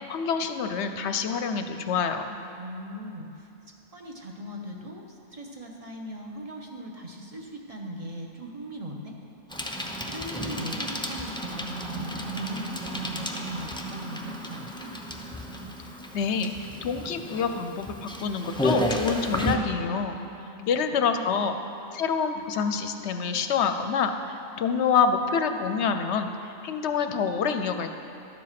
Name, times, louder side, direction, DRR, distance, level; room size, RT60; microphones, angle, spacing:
voice 1, 0.1-2.4 16.1-16.5 16.8-20.2 20.7-21.5 21.9-26.3 26.6-27.9, left 6 dB, 65° left, 7 dB, 0.8 m, -27 dB
voice 2, 2.6-3.5 3.9-9.1 10.1-14.9 20.4-20.6 21.0-21.4, equal, 30° right, 0 dB, 0.9 m, -39 dB
Bicycle, 9.5-19.6, equal, 5° left, 0.4 m, -32 dB
12.5 x 7.5 x 5.8 m, 2.8 s
omnidirectional pair, 1.4 m